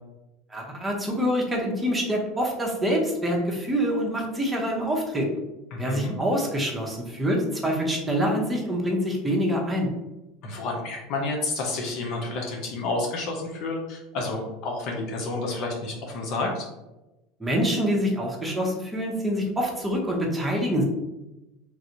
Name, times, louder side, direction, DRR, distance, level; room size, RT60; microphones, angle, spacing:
voice 1, 0.5-5.3 5.8-9.9 17.4-20.8, equal, 10° right, -1 dB, 0.9 m, -26 dB
voice 2, 5.7-6.1 10.4-16.6, left 2 dB, 60° left, 0 dB, 0.7 m, -30 dB
3.3 x 2.5 x 2.9 m, 0.99 s
supercardioid pair, 100°, 0 cm